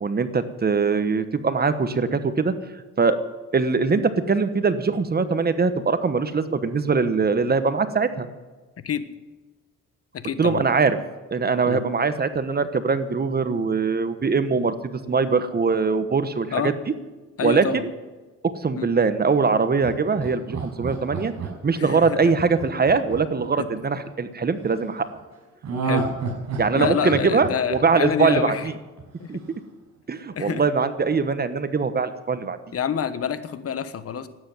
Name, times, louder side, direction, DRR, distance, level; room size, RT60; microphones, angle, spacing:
voice 1, 0.0-2.5 3.0-3.2 3.5-8.3 10.4-11.0 11.3-14.7 15.1-16.7 17.4-17.7 18.6-21.3 21.6-25.1 26.6-28.5 29.3-29.4 30.1-32.6, right 4 dB, 30° right, 11 dB, 1.1 m, -22 dB
voice 2, 10.1-10.7 11.7-11.8 16.5-16.7 17.4-17.8 18.7-18.9 21.8-22.3 23.6-23.7 25.8-26.1 26.7-28.7 29.2-29.4 30.3-30.6 32.7-34.3, left 8 dB, 50° left, 12 dB, 1.3 m, -27 dB
Laughter, 19.8-24.1 25.6-28.6 29.0-29.1, right 4 dB, 65° right, 5.5 m, -30 dB
12.5 x 9.5 x 9.2 m, 1.2 s
cardioid pair, 90°, 30 cm